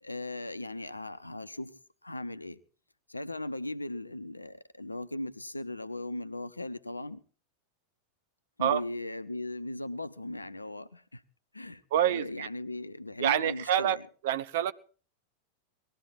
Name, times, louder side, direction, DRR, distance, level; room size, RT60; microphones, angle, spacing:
voice 1, 0.0-2.6 3.1-7.2 8.6-11.2 11.5-14.0, left 2 dB, 85° left, 0.8 m, -38 dB
voice 2, 11.9-12.5 13.2-14.0 14.2-14.7, right 10 dB, 55° right, 0.9 m, -27 dB
20.0 x 13.0 x 4.6 m
figure-of-eight pair, 90°, 0 cm